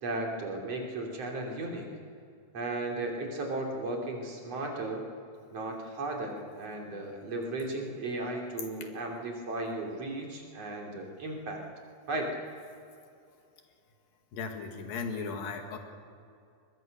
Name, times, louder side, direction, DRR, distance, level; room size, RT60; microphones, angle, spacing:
voice 1, 0.0-1.9 2.5-5.0 5.5-11.6 12.1-12.3, right 2 dB, 45° right, 0 dB, 3.8 m, -35 dB
voice 2, 14.3-15.8, left 5 dB, 85° left, 4 dB, 3.6 m, -36 dB
23.5 x 20.5 x 6.6 m, 2.5 s
omnidirectional pair, 4.0 m